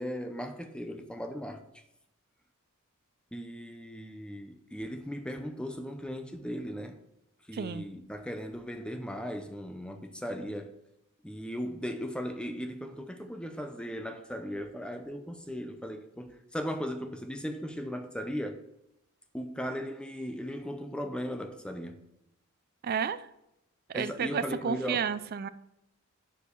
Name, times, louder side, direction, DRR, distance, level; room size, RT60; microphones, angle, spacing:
voice 1, 0.0-1.6 3.3-7.0 7.5-10.7 11.2-18.6 19.3-22.1 23.9-25.1, equal, 5° left, 0.6 m, -37 dB
voice 2, 7.5-7.8 22.8-23.3 23.9-25.5, right 6 dB, 45° right, 0.4 m, -31 dB
7.0 x 4.6 x 6.8 m
head